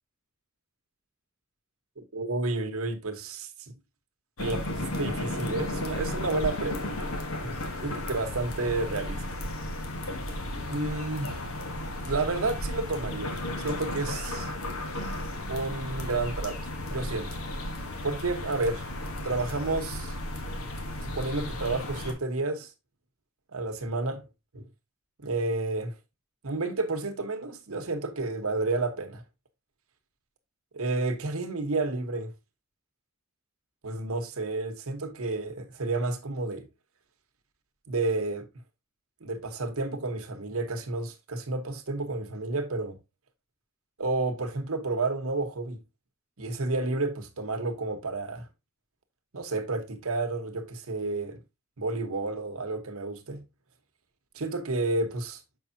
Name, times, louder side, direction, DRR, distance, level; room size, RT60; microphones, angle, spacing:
voice 1, 2.0-3.7 4.4-7.1 7.4-9.2 10.7-11.4 12.0-14.5 15.5-17.4 18.0-18.9 19.2-20.1 21.0-22.7 23.5-24.3 24.5-24.7 25.2-26.0 26.4-29.2 30.7-32.3 33.8-36.7 37.9-38.5 39.2-43.0 44.0-45.8 46.4-48.5 49.3-51.4 51.8-53.5 54.3-55.4, right 3 dB, 75° right, 1.1 m, -31 dB
sound 1, 4.4-22.1, left 1 dB, 70° left, 1.1 m, -34 dB
6.6 x 5.4 x 2.7 m
head